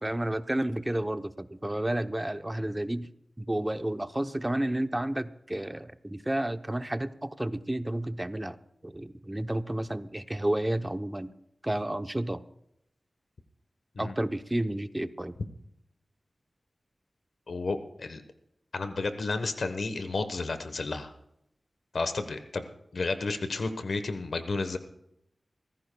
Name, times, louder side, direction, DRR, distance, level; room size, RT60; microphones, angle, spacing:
voice 1, 0.0-3.1 3.4-8.6 8.8-11.3 11.6-12.4 14.0-15.3, right 1 dB, 20° right, 10 dB, 0.8 m, -31 dB
voice 2, 17.5-18.2 18.7-21.1 21.9-22.6 22.9-24.8, left 3 dB, 85° left, 9 dB, 1.1 m, -32 dB
25.5 x 15.0 x 2.3 m, 0.80 s
wide cardioid pair, 65°, 0 cm